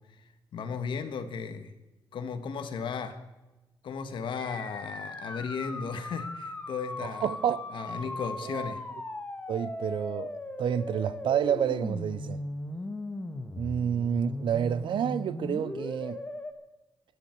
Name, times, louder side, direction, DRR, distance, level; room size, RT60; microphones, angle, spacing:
voice 1, 0.5-1.7 2.1-3.2 3.8-7.3 7.7-8.8, left 6 dB, 75° left, 1.6 m, -35 dB
sound 1, 4.4-16.5, left 2 dB, 20° left, 1.6 m, -38 dB
voice 2, 7.2-7.7 8.0-8.1 8.4-8.7 9.5-10.3 10.6-12.4 13.6-16.2, right 8 dB, 75° right, 0.7 m, -29 dB
23.0 x 10.0 x 4.7 m
cardioid pair, 100°, 8 cm